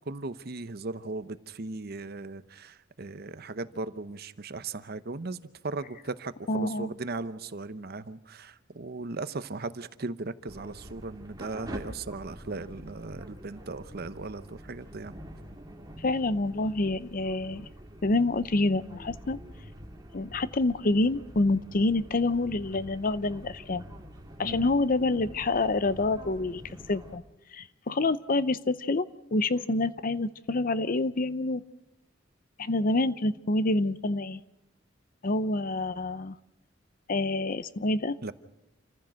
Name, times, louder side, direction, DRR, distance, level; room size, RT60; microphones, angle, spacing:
voice 1, 0.1-15.2 24.4-24.7 38.2-38.3, right 3 dB, 50° right, 13 dB, 0.8 m, -37 dB
voice 2, 6.5-6.9 16.0-17.7 18.0-19.4 20.1-23.8 24.4-26.6 26.9-27.2 27.5-29.1 29.3-31.6 32.6-34.4 35.2-36.4 37.1-38.2, left 2 dB, 45° left, 16 dB, 0.6 m, -27 dB
sound 1, 10.5-27.2, equal, 20° right, 2.1 m, -46 dB
28.5 x 15.0 x 6.3 m, 0.91 s
head